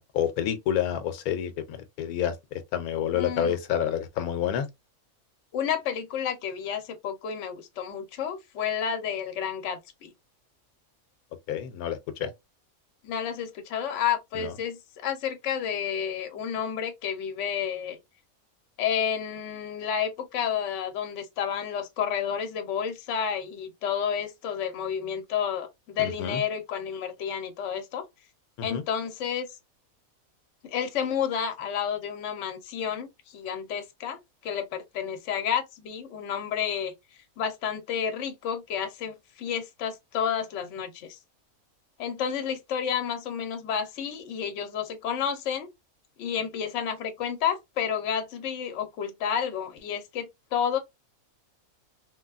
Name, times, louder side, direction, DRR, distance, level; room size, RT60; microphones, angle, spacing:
voice 1, 0.0-4.7 11.5-12.3 14.3-14.5 26.0-26.4 28.6-28.8, left 9 dB, 90° left, 1.1 m, -29 dB
voice 2, 3.1-3.5 5.5-10.1 13.0-18.0 18.8-28.0 28.6-29.5 30.6-36.9 37.4-41.2 42.0-45.7 46.2-50.8, left 8 dB, 65° left, 0.9 m, -30 dB
3.2 x 2.2 x 2.3 m
omnidirectional pair, 1.5 m